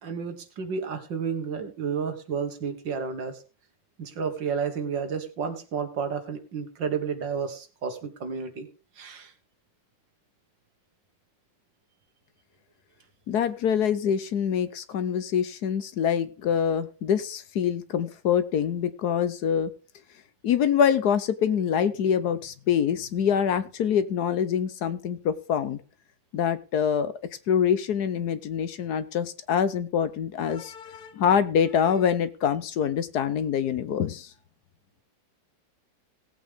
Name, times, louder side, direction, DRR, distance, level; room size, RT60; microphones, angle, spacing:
voice 1, 0.0-3.4 4.0-8.7 9.0-9.3, right 6 dB, 80° right, 7 dB, 2.3 m, -31 dB
voice 2, 13.3-19.7 20.4-25.8 26.3-27.1 27.5-34.3, left 8 dB, 65° left, 13 dB, 1.3 m, -25 dB
18.0 x 8.5 x 3.5 m, 0.35 s
omnidirectional pair, 2.0 m